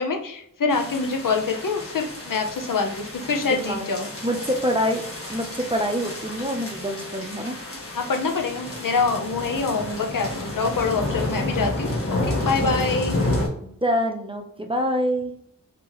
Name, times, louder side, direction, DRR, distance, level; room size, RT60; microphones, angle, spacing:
voice 1, 0.0-4.1 7.9-13.2, left 4 dB, 75° left, 4 dB, 0.8 m, -25 dB
sound 1, 0.7-13.5, left 2 dB, 40° left, 1.7 m, -30 dB
voice 2, 3.4-3.9 4.2-5.0 5.3-7.6 12.6-12.7 13.6-15.4, equal, 15° right, 3 dB, 0.7 m, -26 dB
5.4 x 2.9 x 3.0 m, 0.70 s
wide cardioid pair, 85°, 33 cm